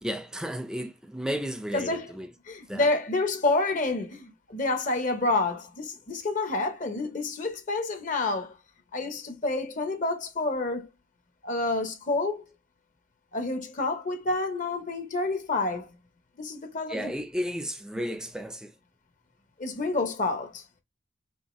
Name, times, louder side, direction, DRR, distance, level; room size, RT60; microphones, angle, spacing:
voice 1, 0.0-2.3 2.7-2.9 16.9-18.8, equal, 5° right, 0.5 m, -33 dB
voice 2, 1.7-2.0 2.5-8.5 8.9-10.9 11.4-12.4 13.3-15.9 16.4-17.1 19.6-20.6, left 2 dB, 40° left, 0.7 m, -28 dB
5.5 x 2.5 x 3.0 m
head